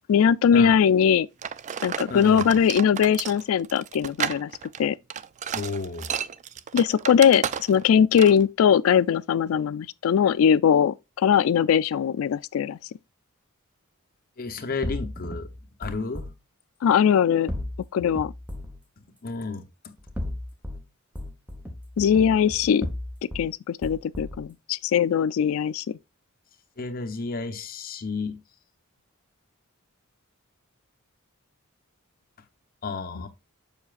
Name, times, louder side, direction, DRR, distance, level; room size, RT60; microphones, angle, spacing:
voice 1, 0.1-1.3 1.8-4.5 4.8-5.0 6.7-12.8 16.8-17.5 17.9-18.3 22.0-22.9 23.2-26.0 33.2-33.3, left 8 dB, 70° left, 0.3 m, -21 dB
sound 1, 1.4-7.9 8.2-8.4, right 8 dB, 35° right, 0.3 m, -32 dB
voice 2, 2.1-2.5 5.5-6.1 14.4-15.5 15.8-16.2 19.2-19.6 26.8-28.4 32.8-33.3, left 4 dB, 45° left, 0.9 m, -32 dB
sound 2, 14.8-16.3 17.5-18.8 20.0-20.8 21.2-23.5 23.8-24.5, left 1 dB, 5° right, 1.1 m, -35 dB
7.1 x 5.7 x 2.4 m
head